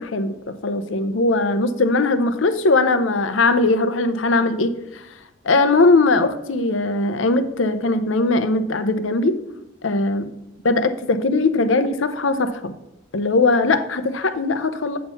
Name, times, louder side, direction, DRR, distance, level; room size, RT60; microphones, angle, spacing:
voice 1, 0.0-5.1 5.4-9.4 9.8-10.3 10.6-12.7 13.1-15.0, left 3 dB, 70° left, 11 dB, 0.7 m, -20 dB
8.3 x 4.5 x 5.6 m, 0.94 s
head